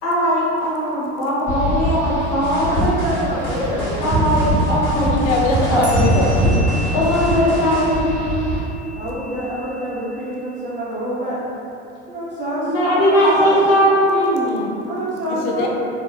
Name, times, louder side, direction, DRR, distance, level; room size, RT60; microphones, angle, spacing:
voice 1, 0.0-2.7 4.0-5.2 5.7-5.8 6.9-8.5 12.7-14.7, equal, 60° left, -7 dB, 1.0 m, -19 dB
sound 1, 1.5-8.6, equal, 5° left, 1.2 m, -22 dB
sound 2, 2.4-8.0, right 1 dB, 80° left, 0.9 m, -31 dB
voice 2, 2.7-4.2 8.9-11.4 12.1-13.8 14.8-15.7, right 1 dB, 20° right, -10 dB, 0.5 m, -26 dB
voice 3, 5.1-6.4 15.2-15.7, left 2 dB, 40° left, -1 dB, 0.5 m, -21 dB
sound 3, 5.8-10.7, right 1 dB, 80° right, 0.7 m, -36 dB
3.5 x 2.0 x 2.2 m, 2.8 s
figure-of-eight pair, 75°, 35 cm